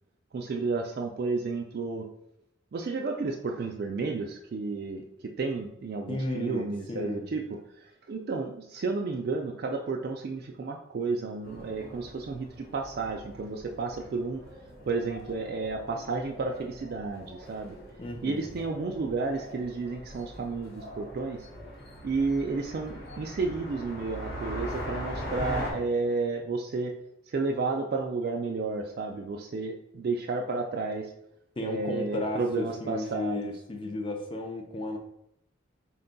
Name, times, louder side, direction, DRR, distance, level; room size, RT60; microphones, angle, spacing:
voice 1, 0.3-2.1 2.7-5.0 5.4-7.4 8.1-12.5 12.7-14.4 14.9-17.8 18.2-21.5 22.0-26.9 27.3-31.1 31.6-33.5, right 3 dB, 50° right, 1 dB, 0.3 m, -31 dB
voice 2, 6.1-7.2 18.0-18.5 31.6-35.0, left 2 dB, 25° left, 4 dB, 0.4 m, -34 dB
sound 1, 11.4-25.7, equal, 50° left, 0.9 m, -41 dB
4.3 x 2.2 x 3.8 m, 0.77 s
head